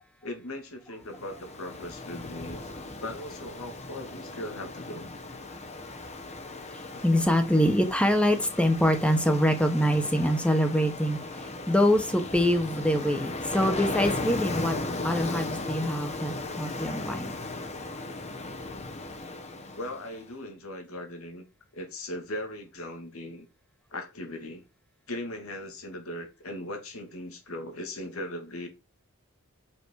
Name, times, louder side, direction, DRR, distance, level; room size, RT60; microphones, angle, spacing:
voice 1, 0.2-2.7 3.0-5.1 6.9-7.0 19.8-21.4 21.7-23.5 23.9-24.6 25.1-28.7, left 1 dB, 80° left, 2.6 m, -38 dB
Ocean, 1.1-20.2, left 2 dB, 30° left, 1.2 m, -36 dB
voice 2, 6.7-14.7 15.0-17.3, equal, 5° left, 1.3 m, -25 dB
6.3 x 6.1 x 4.8 m
head